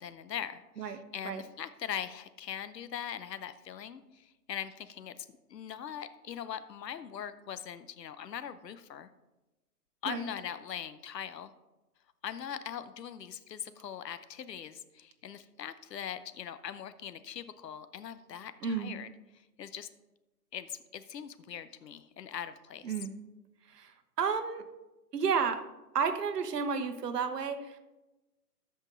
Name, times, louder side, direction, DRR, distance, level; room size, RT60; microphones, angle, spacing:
voice 1, 0.0-9.1 10.0-11.5 12.2-19.1 19.6-19.9 20.5-22.9, left 9 dB, 80° left, 13 dB, 0.8 m, -41 dB
voice 2, 0.8-1.4 10.1-10.3 18.6-18.9 22.8-23.1 23.7-24.6 25.1-25.6 25.9-27.8, right 6 dB, 70° right, 9 dB, 1.2 m, -32 dB
13.0 x 5.3 x 3.9 m, 1.0 s
hypercardioid pair, 150°, 49 cm